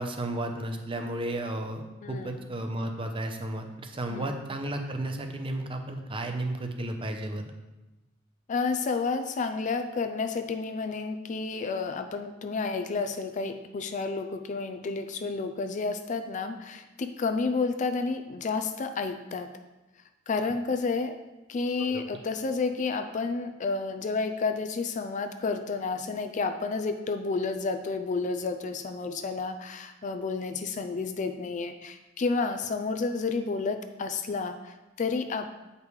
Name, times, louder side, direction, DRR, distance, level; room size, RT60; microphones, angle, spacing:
voice 1, 0.0-1.8 2.1-7.4 21.8-22.0, right 1 dB, 25° right, 5 dB, 0.7 m, -33 dB
voice 2, 2.0-2.4 4.1-4.3 8.5-19.5 20.3-21.2 21.5-35.5, left 4 dB, 40° left, 8 dB, 0.4 m, -31 dB
8.2 x 5.1 x 3.2 m, 1.1 s
head